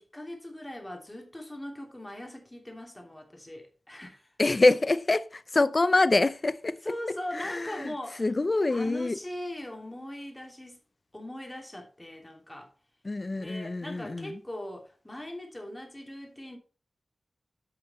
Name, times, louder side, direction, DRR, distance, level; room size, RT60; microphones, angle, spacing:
voice 1, 0.1-4.3 6.8-8.3 8.7-10.8 11.1-12.7 13.3-16.6, left 1 dB, 15° left, 2.9 m, -40 dB
voice 2, 4.4-6.8 7.3-7.9 8.2-9.2 13.0-14.4, left 2 dB, 35° left, 0.6 m, -25 dB
9.7 x 5.8 x 4.3 m
wide cardioid pair, 85°, 0 cm